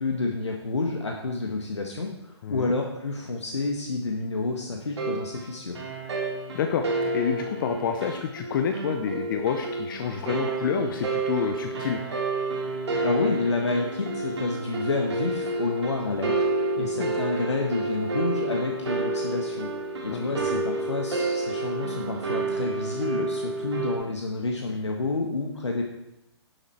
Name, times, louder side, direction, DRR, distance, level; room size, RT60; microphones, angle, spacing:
voice 1, 0.0-5.8 13.0-16.5 16.8-19.7 20.0-25.8, left 3 dB, 75° left, 1 dB, 1.5 m, -29 dB
voice 2, 2.4-2.7 6.5-12.0 16.8-17.1 20.1-20.6, left 7 dB, 45° left, 6 dB, 0.9 m, -29 dB
sound 1, 5.0-24.0, right 3 dB, 70° right, 2.8 m, -30 dB
11.0 x 7.9 x 4.4 m, 0.89 s
figure-of-eight pair, 120°, 15 cm